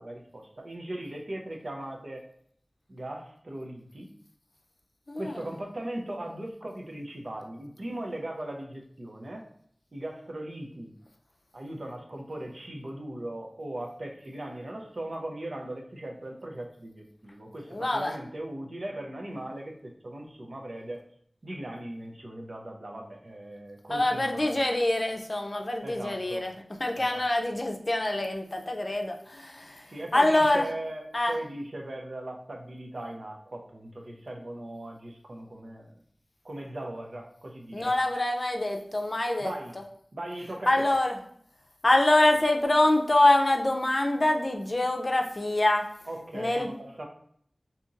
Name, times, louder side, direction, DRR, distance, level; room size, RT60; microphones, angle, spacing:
voice 1, 0.0-2.2 2.9-4.1 5.1-9.4 9.9-10.9 11.5-21.0 21.4-24.6 25.8-26.5 27.0-27.2 29.9-35.9 36.4-37.9 39.4-39.8 40.1-40.9 46.1-47.1, right 1 dB, 70° right, 2 dB, 0.6 m, -39 dB
voice 2, 5.1-5.5 17.7-18.1 23.9-30.7 31.1-31.3 37.7-39.5 40.7-41.2 41.8-45.9 46.3-46.7, left 1 dB, 50° left, 3 dB, 0.5 m, -25 dB
2.8 x 2.5 x 3.9 m, 0.65 s
wide cardioid pair, 55°, 0 cm